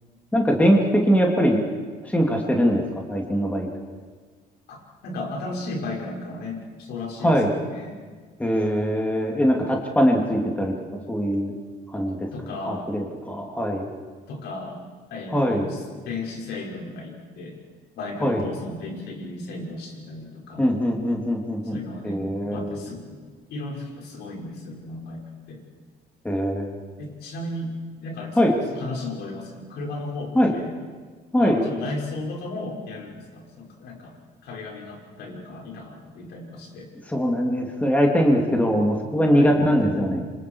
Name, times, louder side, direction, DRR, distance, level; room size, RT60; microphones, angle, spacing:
voice 1, 0.3-1.6 2.0-3.7 7.2-7.5 8.4-11.5 11.9-12.3 12.7-13.8 15.3-15.7 18.2-18.4 20.6-21.8 22.0-22.8 26.2-26.7 28.4-28.5 30.3-30.5 31.3-31.6 37.1-40.2, equal, 10° left, 0 dB, 3.1 m, -21 dB
voice 2, 4.7-8.0 12.3-12.9 14.3-14.8 15.1-17.6 18.0-20.8 21.6-23.2 23.5-25.6 27.0-30.8 31.4-34.1 34.4-36.9 39.4-39.6, left 2 dB, 75° left, -1 dB, 6.0 m, -35 dB
28.0 x 25.5 x 4.9 m, 1.5 s
cardioid pair, 110°, 17 cm